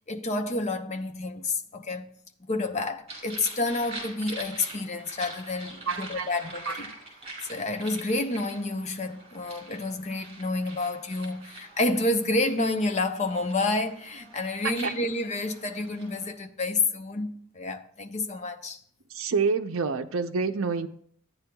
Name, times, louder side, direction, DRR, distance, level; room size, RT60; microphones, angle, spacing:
voice 1, 0.1-2.1 2.5-6.9 7.5-18.8, left 2 dB, 30° left, 0.7 m, -29 dB
sound 1, 3.1-16.3, right 2 dB, 30° right, 4.1 m, -44 dB
voice 2, 5.9-6.3 6.7-6.8 14.6-14.9 19.1-20.9, right 4 dB, 65° right, 0.6 m, -27 dB
14.0 x 9.6 x 2.3 m
head